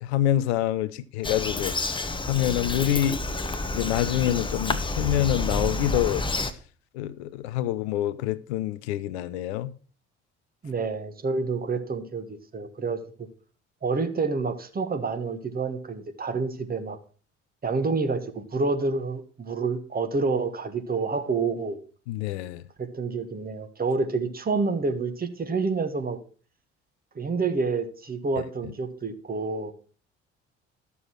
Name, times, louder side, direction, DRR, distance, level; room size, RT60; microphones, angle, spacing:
voice 1, 0.0-3.2 3.7-6.2 6.9-9.7 22.1-22.6, left 12 dB, 65° left, 0.6 m, -26 dB
Bird vocalization bird call bird song, 1.2-6.5, left 2 dB, 15° left, 1.0 m, -29 dB
voice 2, 10.6-13.3 13.8-17.0 17.6-21.8 22.8-26.2 27.1-29.7, right 4 dB, 25° right, 1.4 m, -28 dB
12.5 x 6.9 x 4.4 m
figure-of-eight pair, 50°, 34 cm